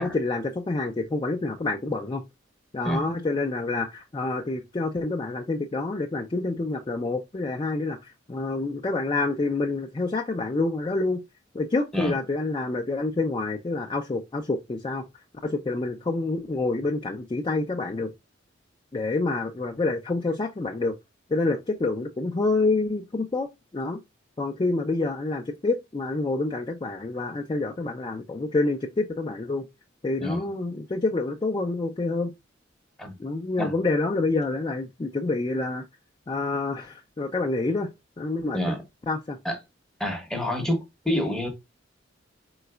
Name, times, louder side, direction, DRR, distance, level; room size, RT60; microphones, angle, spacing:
voice 1, 0.0-2.2 2.7-11.2 11.5-15.1 15.4-18.1 18.9-21.0 21.3-24.0 24.4-29.7 30.0-32.3 33.2-35.8 36.3-37.9 38.2-38.8 39.1-39.4, left 3 dB, 25° left, 0.4 m, -27 dB
voice 2, 40.0-41.5, equal, 5° left, 0.8 m, -28 dB
4.0 x 3.9 x 2.2 m
head